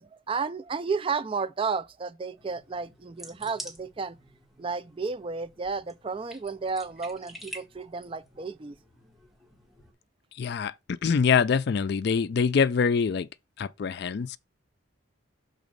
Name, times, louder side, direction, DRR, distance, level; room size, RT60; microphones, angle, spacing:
voice 1, 0.0-4.2 4.6-8.8, right 5 dB, 25° right, 0.4 m, -32 dB
sound 1, 2.4-9.9, equal, ahead, 1.2 m, -48 dB
voice 2, 10.4-13.3 13.6-14.4, left 6 dB, 50° left, 0.3 m, -25 dB
6.2 x 3.9 x 5.1 m
head